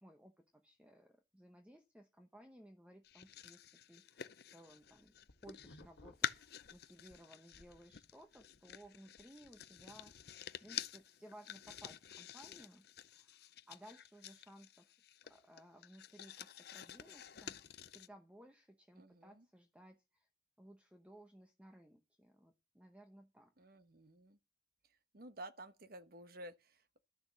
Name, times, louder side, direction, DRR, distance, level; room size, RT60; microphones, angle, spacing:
voice 1, 0.0-5.1 5.4-10.3 10.6-14.9 15.3-20.3 20.6-23.5, right 1 dB, 5° right, 0.8 m, -60 dB
sound 1, 3.0-5.8 6.2-18.1, left 9 dB, 55° left, 0.6 m, -48 dB
sound 2, 4.8-7.2 7.5-9.9, left 1 dB, 75° left, 1.3 m, -62 dB
voice 2, 19.0-19.5 23.6-24.4 24.9-27.0, right 1 dB, 50° right, 1.0 m, -53 dB
12.0 x 6.7 x 7.4 m
head